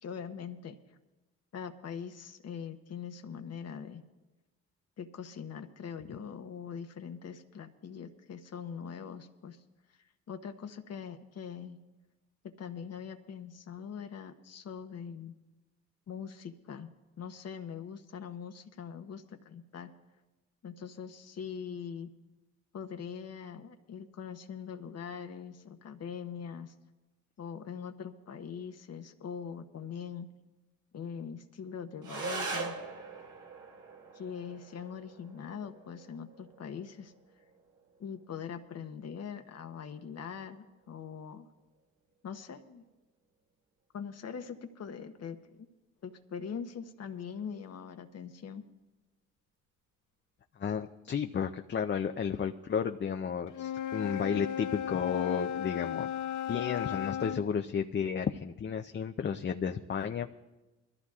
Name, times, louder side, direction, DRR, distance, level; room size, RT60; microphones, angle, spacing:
voice 1, 0.0-0.8 1.5-4.0 5.0-9.6 10.3-11.8 12.4-15.4 16.1-16.9 17.2-19.9 20.6-22.1 22.7-26.7 27.4-30.3 30.9-32.7 34.1-37.1 38.0-41.5 42.2-42.8 43.9-45.7 46.0-48.6, left 7 dB, 55° left, 7 dB, 0.9 m, -42 dB
sound 1, 32.0-41.0, right 3 dB, 75° right, 2.6 m, -43 dB
voice 2, 50.6-56.1 56.5-60.5, left 7 dB, 35° left, 6 dB, 0.6 m, -32 dB
Wind instrument woodwind instrument, 53.5-57.5, left 10 dB, 80° left, 0.7 m, -35 dB
22.0 x 14.0 x 2.4 m, 1.1 s
supercardioid pair, 65°, 30 cm